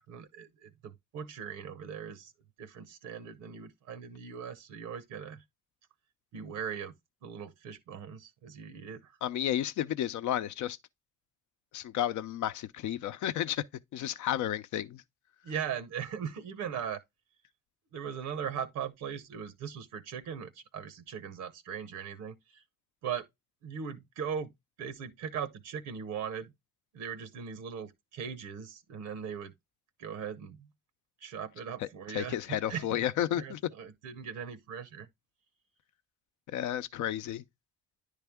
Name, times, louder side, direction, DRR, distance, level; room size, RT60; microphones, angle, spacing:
voice 1, 0.0-2.3 2.6-5.4 6.3-6.9 7.2-9.2 15.4-17.0 17.9-22.6 23.0-23.3 23.6-24.5 24.8-26.5 26.9-29.5 30.0-30.7 31.2-33.0 33.3-35.1, right 7 dB, 90° right, 0.8 m, -39 dB
voice 2, 9.2-10.8 11.7-13.6 13.9-15.0 31.8-33.6 36.5-37.4, left 11 dB, 75° left, 0.6 m, -32 dB
9.9 x 3.4 x 3.5 m
cardioid pair, 90°, 30 cm